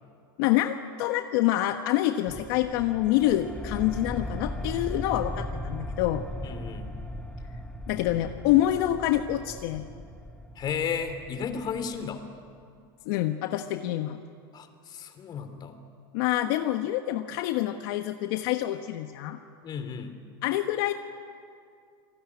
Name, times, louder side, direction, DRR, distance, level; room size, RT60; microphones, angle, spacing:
voice 1, 0.4-6.2 7.9-9.8 13.0-14.2 16.1-19.4 20.4-20.9, left 14 dB, 70° left, 6 dB, 1.3 m, -26 dB
sound 1, 2.3-12.5, left 1 dB, 5° left, 2.0 m, -38 dB
voice 2, 6.4-6.9 10.6-12.2 14.5-15.7 19.6-20.1, left 6 dB, 35° left, 9 dB, 3.3 m, -33 dB
28.5 x 19.5 x 9.8 m, 2.3 s
supercardioid pair, 120°, 12 cm